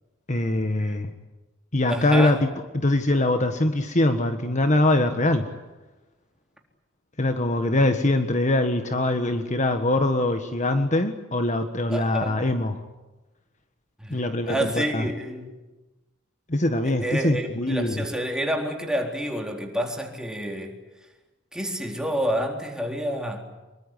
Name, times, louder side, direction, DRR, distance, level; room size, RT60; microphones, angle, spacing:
voice 1, 0.3-1.1 1.7-2.5 2.7-5.5 7.2-12.8 14.1-15.1 16.5-18.1, left 1 dB, 35° left, 7 dB, 1.6 m, -23 dB
voice 2, 1.9-2.4 11.9-12.4 14.0-15.5 16.8-20.7 21.5-23.4, equal, 5° right, 2 dB, 4.0 m, -29 dB
25.5 x 23.0 x 9.9 m, 1.1 s
head